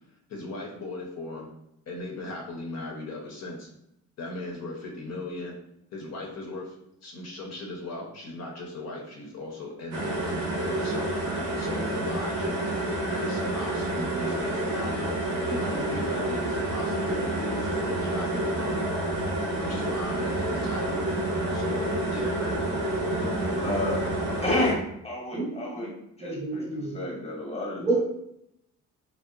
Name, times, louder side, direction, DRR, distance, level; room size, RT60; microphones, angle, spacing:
voice 1, 0.3-1.5 1.9-3.7 4.2-5.6 5.9-6.7 7.0-12.6 13.1-18.8 19.6-21.0 21.5-22.6 23.0-23.6, left 2 dB, 60° left, -1 dB, 0.7 m, -37 dB
sound 1, 9.9-24.7, right 1 dB, 60° right, 0.8 m, -29 dB
voice 2, 23.6-24.0 24.4-25.9 26.2-28.0, left 1 dB, 20° left, -2 dB, 1.0 m, -30 dB
voice 3, 25.3-25.9 26.2-27.0 27.8-28.0, right 3 dB, 10° right, -3 dB, 0.7 m, -29 dB
2.7 x 2.1 x 2.4 m, 0.79 s
cardioid pair, 90°, 30 cm